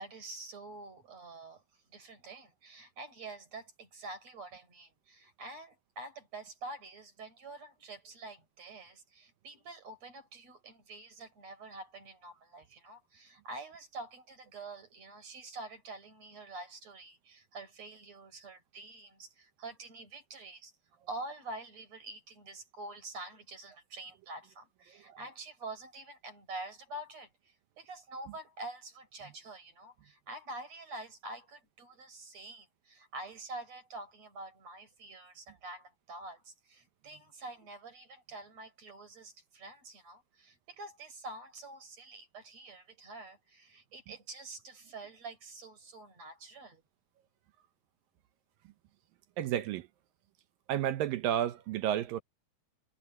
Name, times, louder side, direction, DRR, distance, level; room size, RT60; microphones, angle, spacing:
voice 1, 0.0-1.6 1.9-20.7 21.1-46.8, right 2 dB, 40° right, 5.7 m, -47 dB
voice 2, 49.4-49.9 50.7-52.2, right 11 dB, 75° right, 2.3 m, -31 dB
omnidirectional pair, 4.8 m